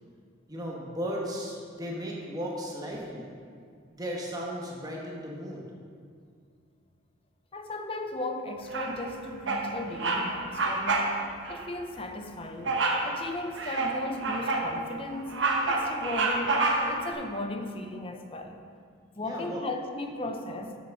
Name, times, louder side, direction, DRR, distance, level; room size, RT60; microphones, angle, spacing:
voice 1, 0.5-3.3 3.9-5.6 19.2-19.6, equal, 20° right, -3 dB, 1.2 m, -35 dB
voice 2, 7.5-11.2 11.5-18.6 19.2-20.8, left 1 dB, 30° left, 5 dB, 0.6 m, -36 dB
Bird vocalization bird call bird song, 8.7-9.1 9.5-9.7 10.0-10.3 10.5-11.1 11.4-11.6 12.7-13.1 13.6-14.7 15.1-17.0, right 3 dB, 65° right, 1.0 m, -27 dB
7.2 x 6.0 x 6.4 m, 2.2 s
head